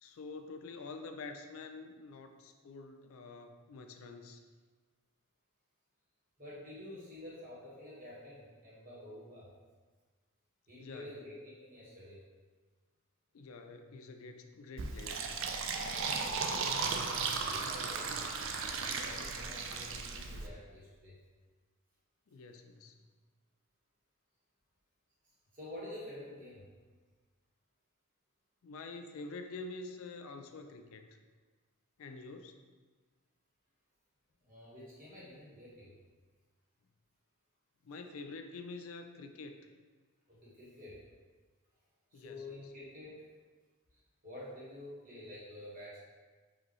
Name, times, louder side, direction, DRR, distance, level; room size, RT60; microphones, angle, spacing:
voice 1, 0.0-4.4 10.8-11.2 13.3-15.2 22.3-23.0 28.6-31.1 32.0-32.6 37.8-39.6 42.1-42.6, left 3 dB, 65° left, 6 dB, 0.4 m, -47 dB
voice 2, 6.4-9.5 10.7-12.2 16.1-18.2 18.8-21.1 25.5-26.7 34.4-35.9 40.3-41.0 42.1-43.3 44.2-46.0, left 1 dB, 35° right, -8 dB, 1.4 m, -49 dB
Fill (with liquid), 14.8-20.5, right 4 dB, 60° right, 0.4 m, -36 dB
4.9 x 2.8 x 3.0 m, 1.4 s
head